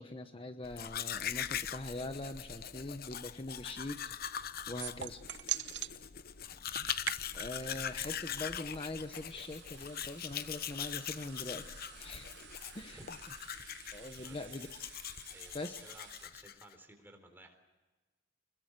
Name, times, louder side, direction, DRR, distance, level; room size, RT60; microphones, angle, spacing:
voice 1, 0.0-5.2 7.3-11.7 12.0-12.3 12.7-13.0 13.9-14.7 15.5-15.8, left 2 dB, 30° left, 7 dB, 1.0 m, -43 dB
Domestic sounds home sounds, 0.6-16.7, left 9 dB, 50° left, 0.9 m, -42 dB
sound 1, 4.8-5.9 6.5-16.3, right 11 dB, 65° right, 1.0 m, -46 dB
voice 2, 14.2-14.6 15.3-17.6, right 1 dB, 10° right, 5 dB, 3.8 m, -56 dB
26.0 x 21.5 x 8.1 m, 1.2 s
head